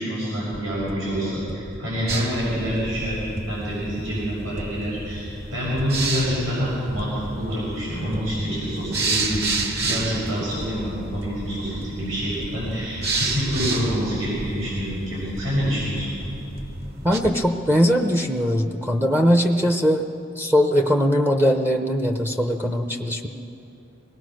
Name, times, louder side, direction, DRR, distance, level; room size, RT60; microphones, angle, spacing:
voice 1, 0.0-3.1 3.5-9.4 9.8-16.1, equal, 85° right, -7 dB, 6.6 m, -27 dB
sound 1, 0.5-17.3, equal, 35° right, 1.2 m, -38 dB
sound 2, 2.1-17.2, right 3 dB, 55° right, 1.9 m, -32 dB
voice 2, 17.0-20.1 20.4-23.3, equal, 10° right, 3 dB, 0.7 m, -20 dB
23.5 x 18.5 x 6.3 m, 2.8 s
head